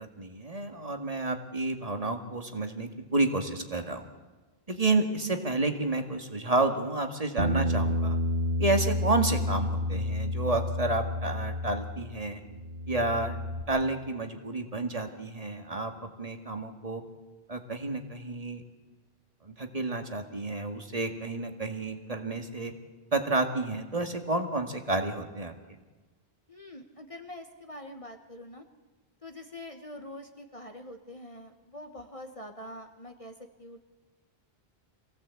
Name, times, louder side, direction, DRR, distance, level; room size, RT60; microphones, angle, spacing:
voice 1, 0.0-4.1 4.7-8.2 8.6-12.4 12.9-13.4 13.7-17.0 17.5-18.6 19.4-22.7 23.1-25.5, right 2 dB, 35° right, 6 dB, 2.0 m, -30 dB
Bass guitar, 7.4-12.1 12.4-13.6, left 1 dB, 60° right, 1.6 m, -30 dB
voice 2, 26.5-28.6 29.2-33.9, left 1 dB, 35° left, 5 dB, 1.3 m, -45 dB
24.5 x 17.0 x 8.3 m, 1.3 s
omnidirectional pair, 1.0 m